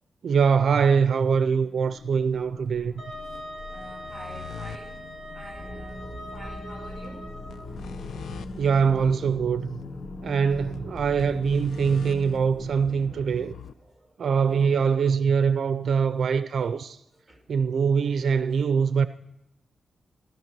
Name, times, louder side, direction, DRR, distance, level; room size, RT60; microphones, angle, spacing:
voice 1, 0.2-2.9 8.6-9.8 10.2-13.5 14.2-17.0 17.5-19.1, right 6 dB, 55° right, 0.5 m, -23 dB
sound 1, 1.1-13.7, left 6 dB, 85° left, 0.6 m, -43 dB
Wind instrument woodwind instrument, 3.0-7.7, equal, 45° left, 3.8 m, -41 dB
voice 2, 3.7-5.0 5.3-7.3 10.7-10.9 13.7-14.9 16.6-16.7 17.1-17.4 17.9-18.0 18.5-18.7, equal, 5° left, 2.5 m, -48 dB
sound 2, 5.5-13.5, equal, 25° left, 5.1 m, -42 dB
16.0 x 13.0 x 6.1 m
wide cardioid pair, 180°, 0 cm